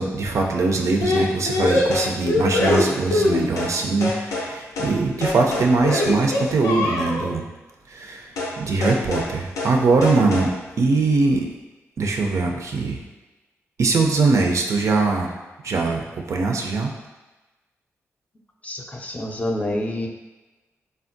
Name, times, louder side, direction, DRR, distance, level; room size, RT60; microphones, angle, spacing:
voice 1, 0.0-7.5 7.9-8.3 8.6-11.5 12.0-13.0 13.8-15.3 15.6-16.9, right 3 dB, 65° right, 1 dB, 0.4 m, -21 dB
sound 1, 1.0-3.8 4.0-4.5 4.8-5.0 5.2-7.3 8.4-8.6 8.8-9.3 9.6-9.8 10.0-10.5, left 2 dB, 85° left, 0.4 m, -23 dB
voice 2, 18.6-20.1, left 1 dB, 25° left, 1 dB, 0.4 m, -27 dB
3.4 x 2.1 x 2.5 m, 1.2 s
cardioid pair, 55°, 6 cm